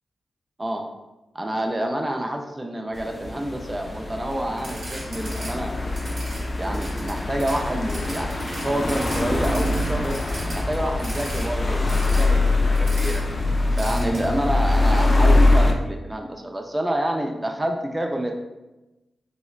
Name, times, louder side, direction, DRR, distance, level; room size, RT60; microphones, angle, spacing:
voice 1, 0.6-0.9 1.3-5.8 6.6-10.2 10.5-13.3 13.7-18.3, right 1 dB, 25° right, 3 dB, 0.4 m, -28 dB
sound 1, 2.9-15.7, left 2 dB, 40° left, 0.4 m, -23 dB
sound 2, 4.6-5.5 5.8-11.5 11.9-12.2 12.7-13.2 13.8-14.3, right 1 dB, 80° right, 1.0 m, -38 dB
4.0 x 2.0 x 2.3 m, 1.0 s
supercardioid pair, 40°, 0 cm